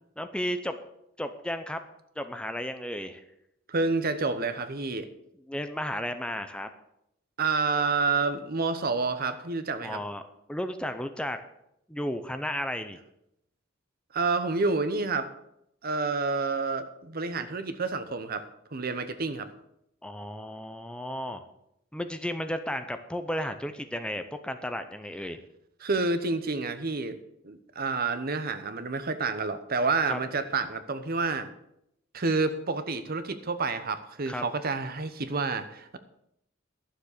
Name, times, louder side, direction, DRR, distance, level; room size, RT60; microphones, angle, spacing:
voice 1, 0.2-0.7 1.2-1.8 2.2-3.2 5.5-6.7 9.8-10.2 10.5-11.4 11.9-13.0 20.0-21.5 21.9-25.4 30.1-30.2 34.3-34.4, equal, 5° left, 8 dB, 0.7 m, -33 dB
voice 2, 3.7-5.1 7.4-10.0 14.1-15.3 15.8-18.5 18.7-19.5 25.8-27.2 27.4-31.5 32.1-36.0, right 4 dB, 50° right, 11 dB, 0.9 m, -29 dB
12.0 x 7.3 x 6.6 m, 0.78 s
head